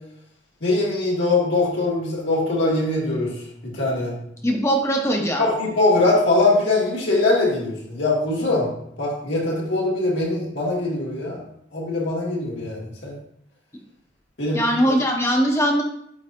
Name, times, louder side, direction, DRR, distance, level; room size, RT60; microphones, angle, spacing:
voice 1, 0.6-3.3 3.6-4.2 5.4-8.7 9.0-11.4 11.7-13.1 14.4-14.6, left 2 dB, 75° left, -5 dB, 2.0 m, -22 dB
voice 2, 4.4-5.4 14.5-15.8, equal, 15° left, 1 dB, 0.8 m, -20 dB
9.3 x 4.1 x 2.6 m, 0.73 s
head